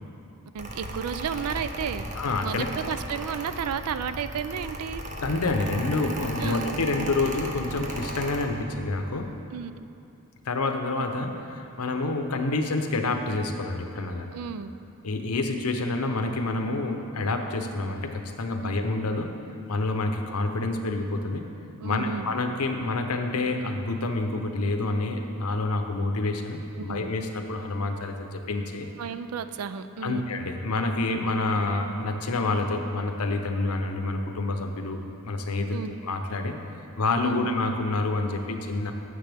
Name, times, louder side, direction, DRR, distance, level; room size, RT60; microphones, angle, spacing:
voice 1, 0.5-2.1 2.4-5.0 6.4-6.6 9.5-9.7 14.3-14.7 18.6-18.7 21.8-22.3 26.8-27.1 29.0-30.2 35.7-36.0 37.2-37.5, right 7 dB, 85° right, 12 dB, 0.4 m, -32 dB
Mechanical fan, 0.6-8.5, right 1 dB, 30° right, 0.7 m, -36 dB
voice 2, 2.2-2.7 5.2-9.3 10.5-14.4 15.0-19.3 19.7-21.5 21.8-28.9 30.0-36.5 37.0-38.9, left 2 dB, 85° left, 5 dB, 0.8 m, -28 dB
12.0 x 7.5 x 3.5 m, 2.6 s
head